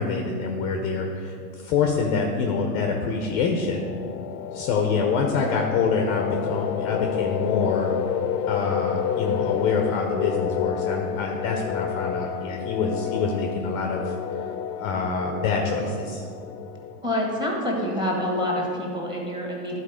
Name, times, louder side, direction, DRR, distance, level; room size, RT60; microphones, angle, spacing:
voice 1, 0.0-3.9 4.5-7.9 8.5-14.1 14.8-16.2, left 4 dB, 30° left, 2 dB, 0.6 m, -26 dB
sound 1, 3.0-17.5, left 9 dB, 85° left, 0.6 m, -30 dB
voice 2, 17.0-19.8, left 1 dB, 10° right, -2 dB, 1.5 m, -27 dB
11.0 x 4.2 x 5.0 m, 2.5 s
hypercardioid pair, 125°, 48 cm